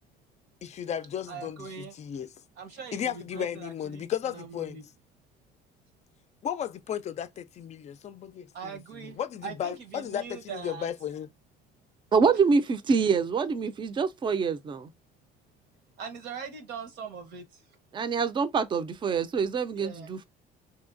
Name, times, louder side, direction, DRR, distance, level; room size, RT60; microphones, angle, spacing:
voice 1, 0.6-2.3 2.9-4.8 6.4-11.3, left 9 dB, 40° left, 0.4 m, -35 dB
voice 2, 1.3-1.9 2.6-4.1 4.3-4.8 8.5-10.9 16.0-17.4 19.8-20.1, right 6 dB, 80° right, 1.0 m, -41 dB
voice 3, 12.1-14.9 17.9-20.2, right 5 dB, 30° right, 0.4 m, -25 dB
3.1 x 2.7 x 2.5 m
cardioid pair, 110°, 17 cm